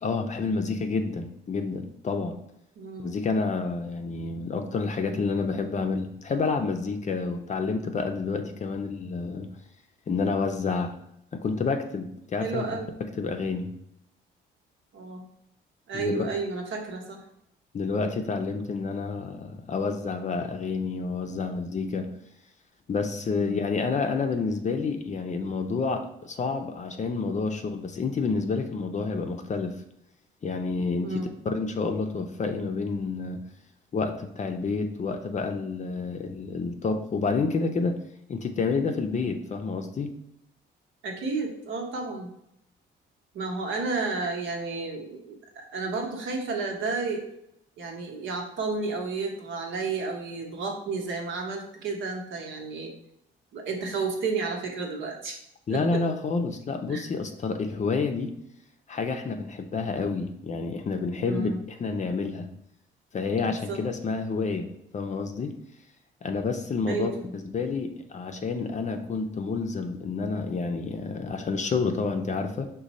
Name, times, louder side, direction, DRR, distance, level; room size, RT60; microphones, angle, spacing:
voice 1, 0.0-2.4 3.0-9.5 10.1-10.9 11.3-12.7 13.2-13.7 15.9-16.2 17.7-22.1 22.9-29.8 30.4-33.4 33.9-38.0 38.3-40.1 55.7-58.3 58.9-62.5 63.1-64.7 64.9-65.5 66.2-72.7, left 4 dB, 35° left, 5 dB, 0.5 m, -29 dB
voice 2, 2.8-3.1 12.4-12.9 14.9-15.3 15.9-17.2 23.3-23.6 31.0-31.3 41.0-42.3 43.3-47.2 47.8-52.9 53.5-55.4 55.7-56.0 56.9-57.0 61.2-61.6 63.4-63.8 66.9-67.3, right 4 dB, 75° right, 1 dB, 1.0 m, -32 dB
5.1 x 2.2 x 4.0 m, 0.77 s
cardioid pair, 90°, 20 cm